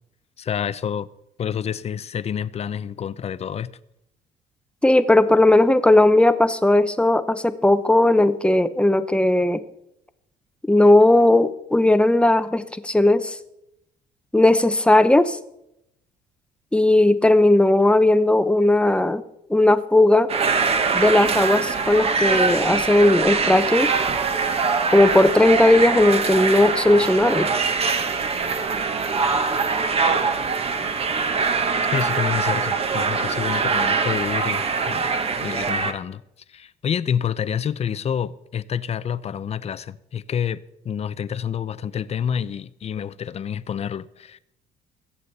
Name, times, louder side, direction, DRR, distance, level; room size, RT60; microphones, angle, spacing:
voice 1, 0.4-1.1 1.4-3.7 31.9-36.2 36.5-44.4, left 8 dB, 40° left, 0.6 m, -28 dB
voice 2, 4.8-9.6 10.7-13.4 14.3-15.4 16.7-19.2 19.5-20.3 20.9-23.9 24.9-27.5, left 1 dB, 5° left, 0.8 m, -17 dB
sound 1, 20.3-35.9, right 5 dB, 35° right, 1.3 m, -23 dB
22.5 x 8.3 x 4.1 m
cardioid pair, 110°, 17 cm